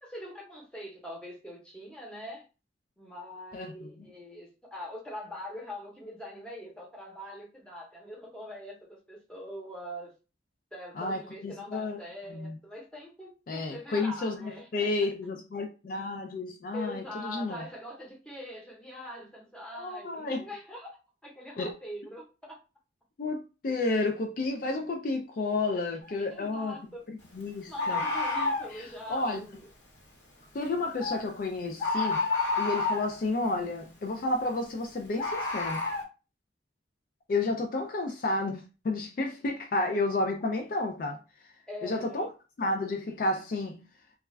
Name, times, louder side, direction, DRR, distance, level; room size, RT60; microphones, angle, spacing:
voice 1, 0.0-2.4 3.0-10.1 10.7-14.9 16.7-21.0 21.2-22.6 25.7-25.8 26.3-27.0 27.7-29.6 41.7-42.3, equal, 5° left, 0.8 m, -43 dB
voice 2, 3.5-4.1 10.9-12.0 12.3-12.6 13.5-17.7 19.7-20.5 21.6-21.7 23.2-26.8 27.1-28.0 28.7-29.4 30.5-32.2 32.6-35.8 37.3-41.2 41.4-41.5 41.8-42.3 42.6-43.8, left 2 dB, 50° left, 0.3 m, -31 dB
Bird, 26.0-26.2 27.8-28.7 31.0-31.2 31.8-33.1 35.2-36.0, left 3 dB, 75° left, 1.1 m, -29 dB
2.3 x 2.2 x 3.2 m
head